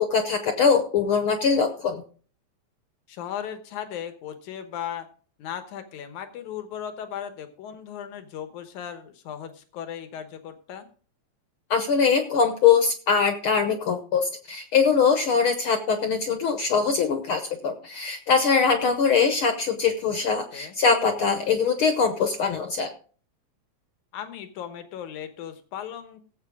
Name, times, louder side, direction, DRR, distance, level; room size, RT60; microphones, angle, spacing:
voice 1, 0.0-2.0 11.7-22.9, left 5 dB, 65° left, 7 dB, 1.4 m, -22 dB
voice 2, 3.1-5.1 5.4-10.9 20.5-20.8 24.1-26.2, left 9 dB, 90° left, 9 dB, 2.6 m, -37 dB
17.0 x 7.7 x 3.6 m, 0.41 s
omnidirectional pair, 3.3 m